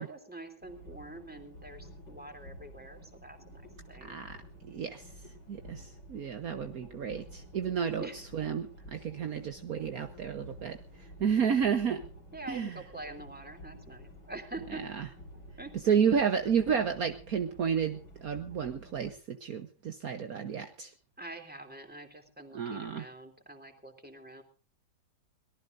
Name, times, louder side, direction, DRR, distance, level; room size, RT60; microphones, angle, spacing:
voice 1, 0.0-3.6 3.9-4.2 6.4-7.1 8.0-8.2 12.3-14.9 15.6-15.7 21.2-24.4, right 2 dB, 5° right, 5 dB, 2.9 m, -45 dB
sound 1, 0.6-19.1, equal, 90° left, 4.9 m, -51 dB
voice 2, 4.0-4.4 4.6-5.0 5.5-10.8 11.2-12.0 12.5-12.8 14.7-15.1 15.8-20.9 22.5-23.1, right 7 dB, 60° right, 7 dB, 1.5 m, -31 dB
24.0 x 18.5 x 2.6 m, 0.35 s
omnidirectional pair, 1.9 m